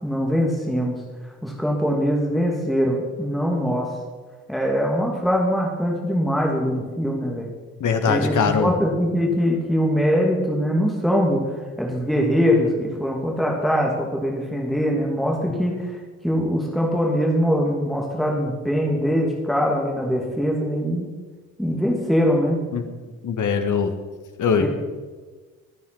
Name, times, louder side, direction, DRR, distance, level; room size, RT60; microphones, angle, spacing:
voice 1, 0.0-1.0 1.4-3.9 4.5-7.5 8.1-11.4 11.8-16.0 16.2-21.1 21.6-22.6 24.6-24.7, equal, ahead, -1 dB, 2.8 m, -22 dB
voice 2, 7.8-8.7 22.7-22.8 23.2-23.9 24.4-24.7, left 6 dB, 45° left, 7 dB, 1.7 m, -21 dB
21.5 x 9.3 x 4.5 m, 1.4 s
figure-of-eight pair, 45°, 41 cm